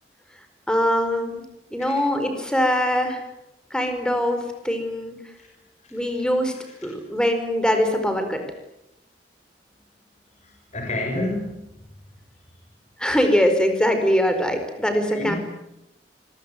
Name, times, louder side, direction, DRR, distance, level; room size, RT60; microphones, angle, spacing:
voice 1, 0.7-1.4 1.7-3.2 3.7-5.2 5.9-6.6 6.8-8.4 13.0-15.4, equal, 5° left, 6 dB, 4.7 m, -22 dB
voice 2, 6.7-7.0 10.4-11.6 15.1-15.4, left 2 dB, 40° left, 2 dB, 5.9 m, -30 dB
26.0 x 21.5 x 9.4 m, 0.86 s
head